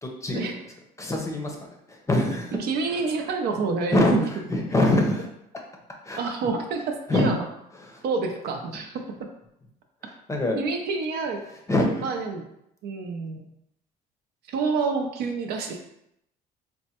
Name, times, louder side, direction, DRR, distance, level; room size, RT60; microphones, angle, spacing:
voice 1, 0.0-0.6 1.0-2.6 2.9-3.0 3.9-4.2 4.5-5.3 6.0-6.2 7.1-7.4 7.8-8.0 10.0-10.6 11.7-12.0, left 1 dB, 15° left, 1 dB, 0.6 m, -24 dB
voice 2, 2.5-4.3 6.2-7.4 8.0-9.0 10.6-11.4 12.0-12.4 12.8-13.5 14.5-15.8, right 4 dB, 75° right, 4 dB, 0.6 m, -28 dB
4.3 x 2.1 x 2.8 m, 0.79 s
cardioid pair, 110°, 17 cm